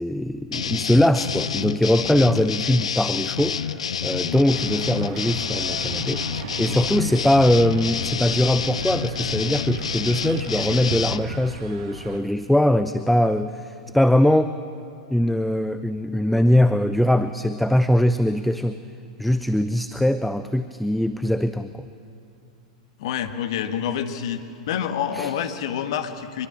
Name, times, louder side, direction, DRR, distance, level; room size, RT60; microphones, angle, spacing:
voice 1, 0.0-3.7 4.0-14.6 15.1-18.8 19.2-21.9 25.1-25.3, left 1 dB, ahead, 11 dB, 0.6 m, -21 dB
sound 1, 0.5-11.2, left 7 dB, 70° left, 0.7 m, -28 dB
sound 2, 4.5-12.2, right 5 dB, 55° right, 1.7 m, -35 dB
voice 2, 23.0-24.4 24.7-26.5, left 8 dB, 55° left, 8 dB, 1.7 m, -27 dB
24.5 x 22.5 x 7.5 m, 2.5 s
figure-of-eight pair, 95°, 3 cm